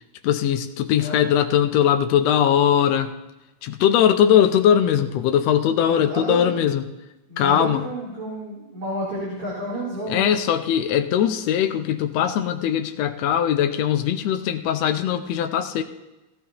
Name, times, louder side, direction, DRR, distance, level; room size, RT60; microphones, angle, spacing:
voice 1, 0.2-3.1 3.6-6.9 7.4-7.8 10.1-15.8, left 9 dB, 80° left, 7 dB, 1.5 m, -20 dB
voice 2, 1.0-1.3 5.8-6.5 7.3-10.4, right 1 dB, 45° right, -6 dB, 4.1 m, -30 dB
17.0 x 15.5 x 2.9 m, 1.0 s
omnidirectional pair, 3.7 m